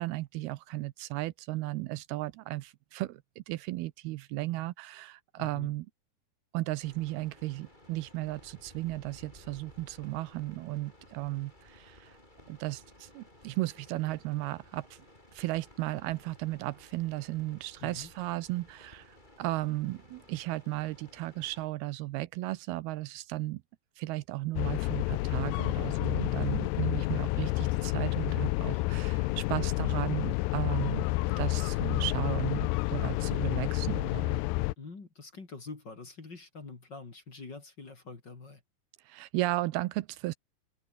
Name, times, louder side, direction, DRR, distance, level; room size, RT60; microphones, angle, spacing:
voice 1, 0.0-5.9 6.5-12.2 12.5-15.0 15.3-23.6 24.0-31.1 31.4-34.4 39.1-40.3, right 18 dB, 80° right, 2.6 m, -35 dB
voice 2, 5.4-5.7 17.8-18.1 34.8-38.6, left 4 dB, 30° left, 3.2 m, -45 dB
sound 1, 6.8-21.7, left 1 dB, 10° left, 6.1 m, -57 dB
sound 2, 24.6-34.7, left 21 dB, 90° left, 2.7 m, -30 dB
omnidirectional pair, 4.6 m